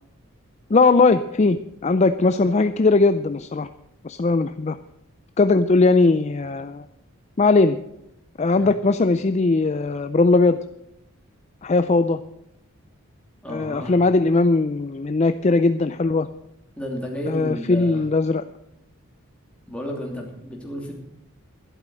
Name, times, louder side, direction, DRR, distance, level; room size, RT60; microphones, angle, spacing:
voice 1, 0.7-3.7 4.0-4.8 5.4-6.9 7.4-7.8 8.4-10.6 11.6-12.2 13.5-16.3 17.3-18.4, left 3 dB, 30° left, 11 dB, 0.4 m, -19 dB
voice 2, 13.4-14.0 16.8-18.0 19.7-20.9, equal, 5° left, -1 dB, 2.8 m, -32 dB
12.0 x 11.5 x 6.2 m, 0.83 s
head